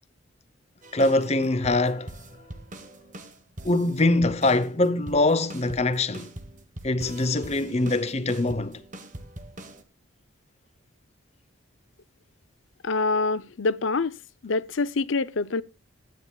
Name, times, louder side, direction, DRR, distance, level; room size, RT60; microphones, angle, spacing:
sound 1, 0.8-9.8, right 1 dB, 35° right, 1.2 m, -43 dB
voice 1, 0.9-2.2 3.6-6.3 6.8-8.8, left 2 dB, 30° left, 0.8 m, -23 dB
voice 2, 12.8-14.2 14.4-15.6, left 3 dB, 65° left, 0.6 m, -25 dB
21.5 x 9.5 x 2.3 m
head